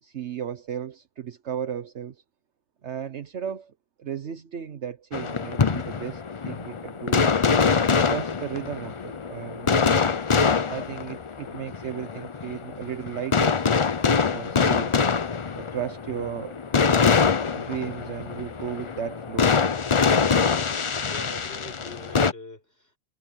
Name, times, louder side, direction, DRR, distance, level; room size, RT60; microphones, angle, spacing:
voice 1, 0.0-2.2 2.8-3.7 4.0-7.4 8.1-10.0 10.6-13.6 14.3-14.9 15.5-16.6 17.5-19.6, right 9 dB, 70° right, 1.3 m, -35 dB
sound 1, 5.1-22.3, left 5 dB, 35° left, 0.5 m, -24 dB
voice 2, 21.0-23.0, left 2 dB, 55° left, 6.8 m, -43 dB
omnidirectional pair, 1.2 m